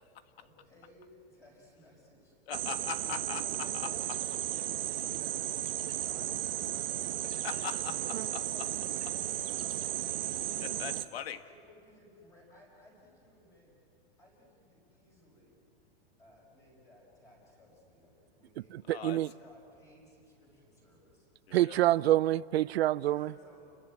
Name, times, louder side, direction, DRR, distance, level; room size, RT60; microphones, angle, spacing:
voice 1, 0.4-2.4 3.0-3.2 3.7-7.2 7.8-10.7 11.4-13.7 14.2-15.6 16.2-21.3 22.9-23.8, left 1 dB, 10° left, 5.6 m, -59 dB
voice 2, 2.5-3.9 7.4-8.4 10.6-11.4 18.9-19.2 21.5-21.9, left 9 dB, 75° left, 1.6 m, -40 dB
sound 1, 2.5-11.0, right 13 dB, 65° right, 1.1 m, -34 dB
voice 3, 18.9-19.3 21.5-23.3, right 14 dB, 85° right, 0.6 m, -26 dB
29.5 x 22.0 x 8.6 m
supercardioid pair, 175°, 31 cm